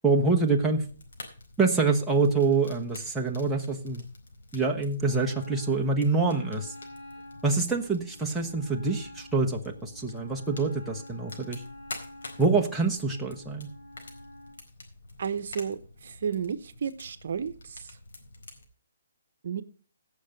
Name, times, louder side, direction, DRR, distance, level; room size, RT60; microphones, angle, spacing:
voice 1, 0.0-0.8 1.6-4.1 4.5-6.7 7.4-11.6 12.4-13.7, right 4 dB, 5° right, -2 dB, 1.1 m, -26 dB
Fire, 0.7-18.6, left 2 dB, 75° left, 4.3 m, -48 dB
Wind instrument woodwind instrument, 5.0-14.6, left 1 dB, 35° left, 3.0 m, -48 dB
voice 2, 15.2-15.8 16.2-17.5 19.4-19.6, right 7 dB, 55° right, 12 dB, 1.0 m, -31 dB
16.5 x 6.7 x 5.1 m, 0.39 s
hypercardioid pair, 165°, 0 cm